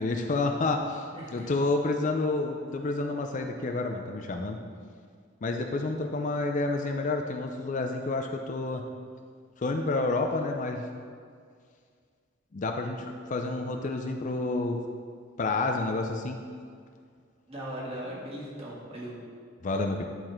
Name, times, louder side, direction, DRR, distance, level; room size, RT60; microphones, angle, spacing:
voice 1, 0.0-4.6 5.4-8.8 9.6-10.9 12.5-14.8 15.4-16.4 19.6-20.0, left 3 dB, 40° left, 4 dB, 0.4 m, -29 dB
voice 2, 1.1-1.5 17.5-19.1, right 1 dB, 30° right, -5 dB, 1.6 m, -38 dB
10.5 x 4.1 x 4.3 m, 2.1 s
head